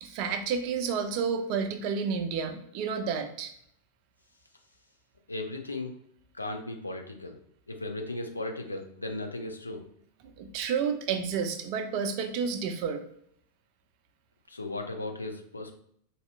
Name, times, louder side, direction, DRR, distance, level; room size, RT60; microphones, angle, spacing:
voice 1, 0.0-3.5 10.4-13.0, right 6 dB, 45° right, 7 dB, 0.4 m, -30 dB
voice 2, 5.3-5.9 6.3-7.4 7.7-9.9 14.5-15.7, left 2 dB, 80° left, 5 dB, 0.4 m, -36 dB
4.1 x 2.7 x 2.3 m, 0.68 s
figure-of-eight pair, 90°, 0 cm